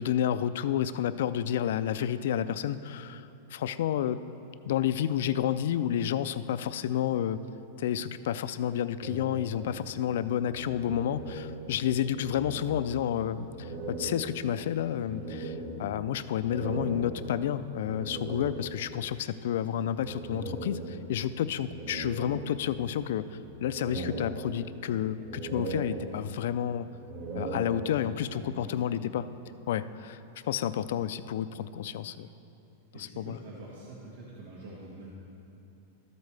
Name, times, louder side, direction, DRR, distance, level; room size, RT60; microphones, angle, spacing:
voice 1, 0.0-4.2 4.6-7.4 7.8-26.9 27.3-29.3 29.7-30.2 30.5-32.3 33.0-33.4, left 10 dB, 65° left, 13 dB, 0.3 m, -30 dB
sound 1, 9.0-11.8 12.0-13.2 13.6-19.0 20.0-21.3 21.7-23.0 23.4-24.9 25.2-26.5 27.0-28.3, right 2 dB, 60° right, 1.4 m, -39 dB
voice 2, 28.4-29.0 29.7-29.8 32.9-35.1, right 2 dB, 80° right, -5 dB, 1.5 m, -46 dB
13.5 x 8.1 x 3.3 m, 2.9 s
supercardioid pair, 160°, 0 cm